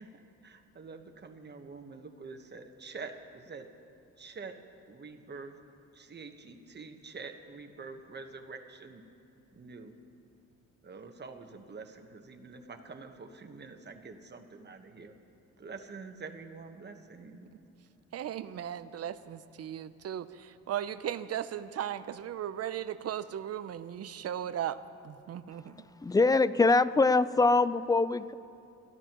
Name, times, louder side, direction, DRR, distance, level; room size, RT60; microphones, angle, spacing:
voice 1, 0.0-3.7 4.2-4.6 4.9-5.6 5.9-9.0 9.5-9.9 10.8-15.1 15.6-17.5, right 4 dB, 35° right, 1.2 m, -46 dB
voice 2, 18.1-25.8, right 10 dB, 55° right, 0.6 m, -37 dB
voice 3, 25.5-28.3, left 3 dB, 15° left, 0.4 m, -24 dB
29.5 x 12.0 x 3.0 m
cardioid pair, 90°, 30 cm